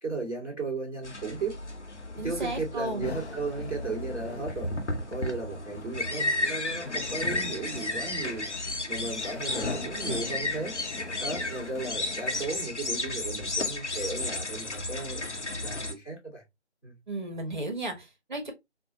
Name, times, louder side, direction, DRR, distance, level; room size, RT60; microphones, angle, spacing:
voice 1, 0.0-1.6 2.2-4.7 5.1-8.5 8.9-10.7 11.2-15.2 15.6-16.4 16.8-17.0, right 3 dB, 10° left, 0.9 m, -35 dB
sound 1, 1.0-15.9, left 2 dB, 85° left, 1.0 m, -33 dB
voice 2, 2.2-3.0 17.1-18.5, right 2 dB, 45° right, 1.0 m, -34 dB
sound 2, 3.0-12.5, left 3 dB, 65° left, 0.7 m, -41 dB
4.5 x 2.2 x 2.8 m
figure-of-eight pair, 155°, 34 cm